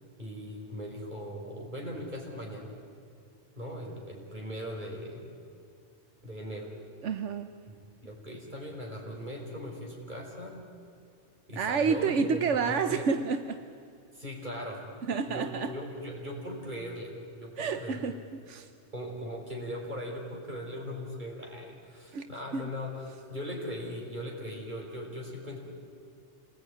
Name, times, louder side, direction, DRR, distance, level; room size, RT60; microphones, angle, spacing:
voice 1, 0.2-2.8 3.6-5.2 6.2-6.7 7.7-7.8 8.0-10.6 11.5-13.1 14.1-14.9 15.3-18.0 18.9-25.6, equal, 40° right, -1 dB, 5.5 m, -39 dB
voice 2, 7.0-7.5 11.6-13.6 15.0-15.7 17.6-18.2 18.5-18.7 22.1-22.7, right 5 dB, 85° right, 9 dB, 1.2 m, -29 dB
27.5 x 20.0 x 9.8 m, 2.4 s
omnidirectional pair, 1.2 m